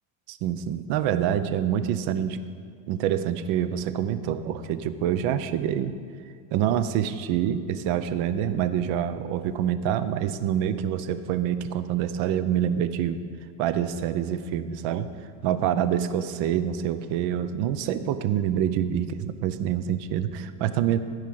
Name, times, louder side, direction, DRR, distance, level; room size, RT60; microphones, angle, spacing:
voice 1, 0.3-2.4 2.9-6.0 6.5-13.2 13.6-15.1 15.4-21.0, right 10 dB, 85° right, 12 dB, 0.8 m, -26 dB
14.5 x 5.0 x 7.6 m, 2.3 s
cardioid pair, 145°, 40 cm